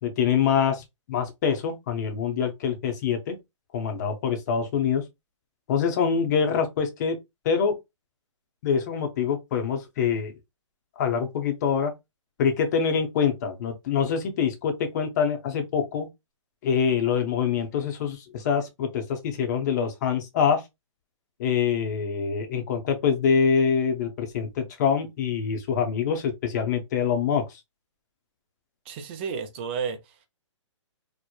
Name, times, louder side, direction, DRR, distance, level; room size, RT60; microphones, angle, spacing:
voice 1, 0.0-3.4 3.7-5.0 5.7-7.2 7.4-7.8 8.6-10.3 11.0-11.9 12.4-16.1 16.6-20.6 21.4-27.6, left 7 dB, 35° left, 0.6 m, -25 dB
voice 2, 28.9-30.3, right 6 dB, 20° right, 0.3 m, -32 dB
2.9 x 2.0 x 2.2 m
hypercardioid pair, 150°, 16 cm